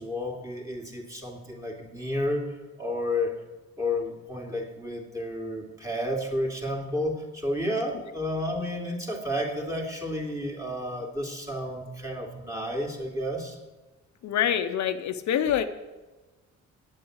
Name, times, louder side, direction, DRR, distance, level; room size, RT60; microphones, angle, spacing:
voice 1, 0.0-2.4 2.8-3.3 3.8-13.6, left 1 dB, 10° right, 1 dB, 2.7 m, -31 dB
voice 2, 14.2-15.6, left 10 dB, 70° left, 8 dB, 0.8 m, -25 dB
8.7 x 8.4 x 8.0 m, 1.2 s
cardioid pair, 90°, 30 cm